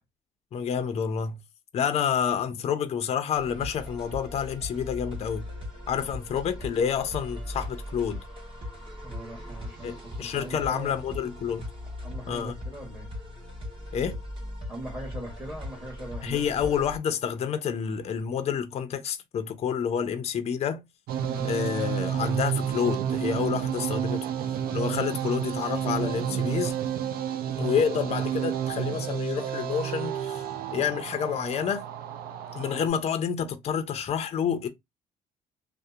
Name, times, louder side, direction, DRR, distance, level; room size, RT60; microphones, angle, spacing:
voice 1, 0.5-1.4 1.7-5.5 5.9-8.2 9.8-11.7 12.3-12.5 13.9-14.2 16.2-20.8 21.4-24.3 24.7-26.7 27.6-30.5 30.7-31.8 32.5-34.7, left 7 dB, 40° left, 0.5 m, -28 dB
sound 1, 3.3-17.0, left 1 dB, 30° right, 1.3 m, -39 dB
voice 2, 9.0-11.0 12.0-13.1 14.7-16.5 21.2-21.5, right 1 dB, 10° right, 1.1 m, -40 dB
sound 2, 21.1-32.9, right 9 dB, 65° right, 0.5 m, -30 dB
2.7 x 2.0 x 2.4 m
cardioid pair, 110°, 17 cm